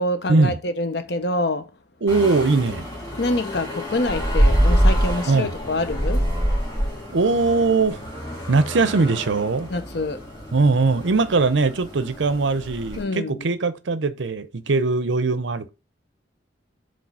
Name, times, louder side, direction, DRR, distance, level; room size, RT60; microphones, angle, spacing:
voice 1, 0.0-1.7 3.2-6.3 9.7-10.2 13.0-13.5, left 2 dB, 60° left, 0.8 m, -26 dB
voice 2, 2.0-2.9 5.3-5.6 7.1-8.0 8.5-9.7 10.5-15.7, right 3 dB, 80° right, 0.6 m, -20 dB
sound 1, 2.1-13.0, equal, 15° left, 2.6 m, -25 dB
5.2 x 3.8 x 5.4 m
head